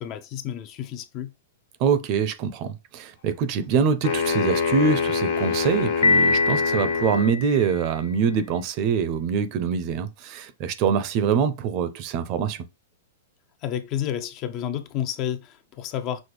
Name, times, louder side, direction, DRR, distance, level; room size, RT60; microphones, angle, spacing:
voice 1, 0.0-1.3 13.6-16.2, left 10 dB, 30° left, 0.4 m, -30 dB
voice 2, 1.8-12.6, right 6 dB, 35° right, 0.5 m, -24 dB
sound 1, 4.0-7.4, left 5 dB, 60° left, 1.3 m, -25 dB
Piano, 6.0-8.0, left 3 dB, 85° left, 0.6 m, -23 dB
6.1 x 2.1 x 3.3 m
hypercardioid pair, 150°, 0 cm